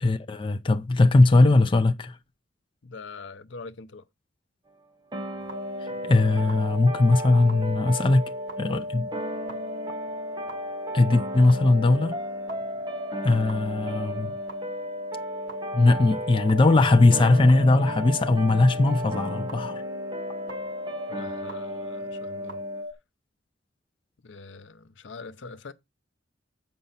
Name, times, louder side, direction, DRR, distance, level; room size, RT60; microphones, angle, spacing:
voice 1, 0.0-2.2 6.0-8.2 8.6-9.1 10.9-12.1 13.2-14.3 15.7-19.8, left 2 dB, 25° left, 0.4 m, -20 dB
voice 2, 2.8-4.0 21.1-22.6 24.2-25.7, left 4 dB, 70° left, 0.7 m, -43 dB
sound 1, 5.1-22.8, right 2 dB, 20° right, 1.4 m, -37 dB
sound 2, 5.5-22.9, left 1 dB, 75° right, 1.8 m, -36 dB
7.8 x 5.3 x 5.6 m
head